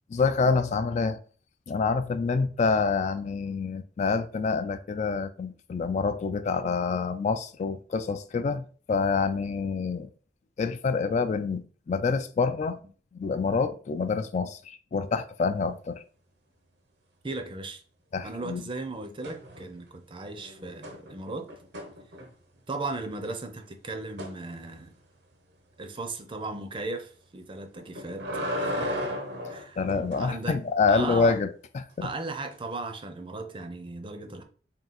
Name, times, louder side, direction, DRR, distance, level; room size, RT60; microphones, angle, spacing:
voice 1, 0.1-1.2 1.7-10.1 10.6-12.8 13.1-16.0 18.1-18.6 29.8-32.1, left 4 dB, 40° left, 0.3 m, -27 dB
voice 2, 17.2-17.8 18.2-21.5 22.7-24.9 25.8-28.3 28.6-28.9 29.5-29.9 30.2-30.6 30.9-31.4 32.0-34.4, right 3 dB, 30° right, 0.5 m, -36 dB
sound 1, 19.2-19.9 20.2-22.6 24.2-24.4 27.8-30.3 32.5-32.6, equal, 75° right, 0.8 m, -35 dB
3.7 x 2.3 x 4.1 m
head